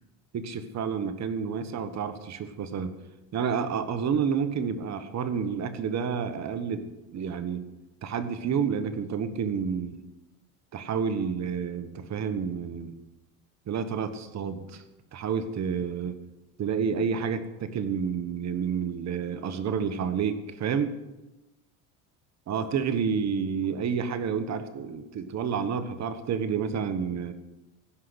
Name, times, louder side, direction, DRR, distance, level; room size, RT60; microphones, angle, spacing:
voice 1, 0.3-2.9 3.3-7.6 8.0-10.0 10.7-12.9 13.7-14.8 15.1-16.2 16.6-20.9 22.5-27.3, right 6 dB, 40° right, 11 dB, 1.3 m, -29 dB
15.5 x 5.6 x 8.0 m, 1.0 s
supercardioid pair, 105°, 43 cm